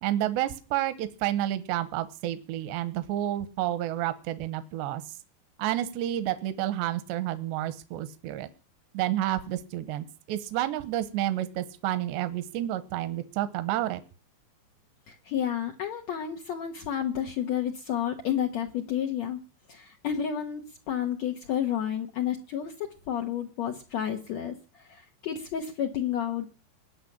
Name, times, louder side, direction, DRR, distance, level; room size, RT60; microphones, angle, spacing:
voice 1, 0.0-5.0 5.6-8.5 8.9-14.0, right 13 dB, 85° right, 12 dB, 3.1 m, -30 dB
voice 2, 15.1-19.4 19.7-20.6 20.9-26.5, left 9 dB, 85° left, 2 dB, 1.5 m, -31 dB
19.5 x 6.8 x 10.0 m, 0.40 s
omnidirectional pair, 5.0 m